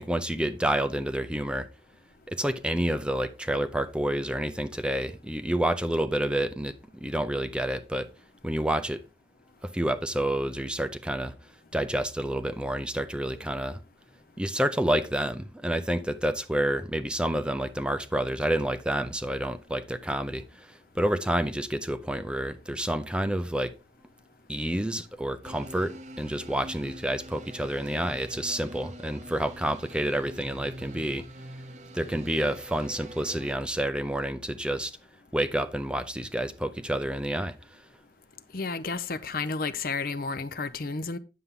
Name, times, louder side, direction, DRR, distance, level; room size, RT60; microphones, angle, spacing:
voice 1, 0.0-1.7 2.3-6.7 7.0-8.1 8.4-9.0 9.6-11.3 11.7-13.8 14.4-23.7 24.5-31.2 31.9-34.9 35.3-37.5, right 1 dB, 5° right, 0.5 m, -29 dB
sound 1, 25.4-33.5, right 1 dB, 40° right, 0.7 m, -45 dB
voice 2, 38.5-41.2, left 4 dB, 55° left, 0.7 m, -31 dB
9.6 x 7.0 x 3.7 m
head